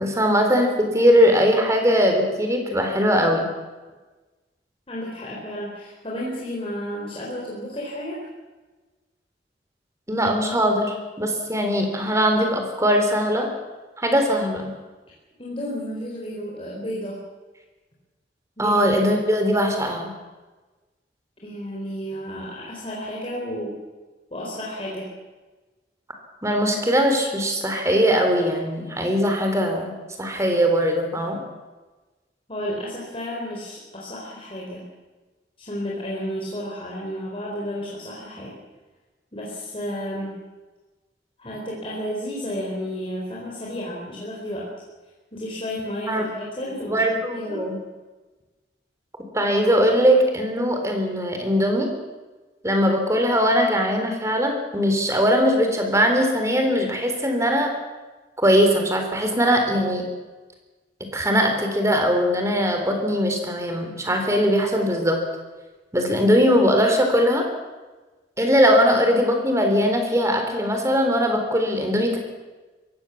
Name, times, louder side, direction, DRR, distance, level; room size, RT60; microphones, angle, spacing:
voice 1, 0.0-3.5 10.1-13.5 14.0-14.7 18.6-20.1 26.4-29.9 30.2-31.4 46.1-46.2 46.9-47.8 49.3-51.9 52.6-57.7 58.4-60.0 61.1-65.2 65.9-67.4 68.4-72.2, equal, 15° right, 4 dB, 3.8 m, -20 dB
voice 2, 4.9-8.2 15.4-17.2 18.6-18.8 21.4-23.7 24.3-25.1 32.5-34.9 35.6-38.6 39.3-40.4 41.4-44.7 45.3-47.0 47.3-47.6, equal, 30° left, -4 dB, 4.4 m, -32 dB
22.5 x 17.0 x 7.2 m, 1.2 s
head